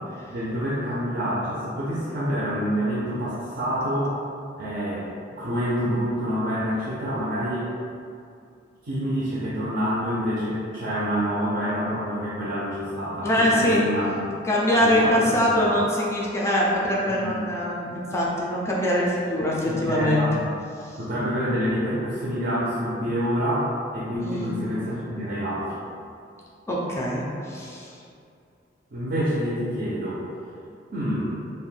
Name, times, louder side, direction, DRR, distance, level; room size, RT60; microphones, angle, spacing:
voice 1, 0.3-4.1 4.6-5.1 5.4-7.7 8.8-14.3 14.8-15.8 17.1-17.3 19.7-20.5 21.0-25.8 28.9-30.2 30.9-31.3, equal, 55° right, -7 dB, 0.5 m, -27 dB
voice 2, 13.2-13.8 14.5-20.3 20.8-21.0 24.2-24.6 26.7-27.9, equal, 15° left, -5 dB, 0.3 m, -23 dB
2.5 x 2.1 x 3.2 m, 2.4 s
head